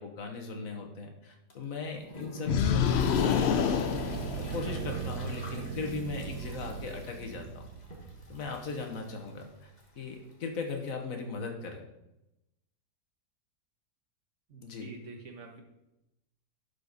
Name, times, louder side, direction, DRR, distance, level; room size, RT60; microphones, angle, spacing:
voice 1, 0.0-3.8 4.4-7.6 8.3-9.5 10.0-11.8 14.6-14.9, left 4 dB, 60° left, 3 dB, 1.6 m, -38 dB
sound 1, 1.5-10.9, left 1 dB, 30° left, 1.4 m, -49 dB
sound 2, 2.5-4.9, left 7 dB, 90° left, 0.5 m, -27 dB
sound 3, 2.5-9.0, right 8 dB, 85° right, 1.2 m, -39 dB
voice 2, 14.5-15.6, right 4 dB, 50° right, 3 dB, 1.5 m, -47 dB
11.0 x 5.2 x 4.1 m, 0.91 s
omnidirectional pair, 1.7 m